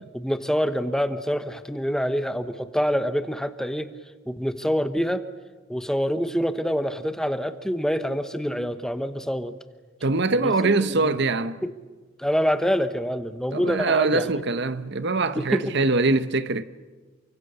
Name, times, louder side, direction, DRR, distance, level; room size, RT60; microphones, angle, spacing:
voice 1, 0.1-3.9 4.3-5.2 5.7-9.5 10.4-11.1 11.6-11.7 12.2-14.3 15.3-15.6, equal, 5° left, 0.9 m, -26 dB
voice 2, 10.0-11.6 13.5-16.6, right 3 dB, 55° right, 0.9 m, -23 dB
29.0 x 24.5 x 6.8 m
head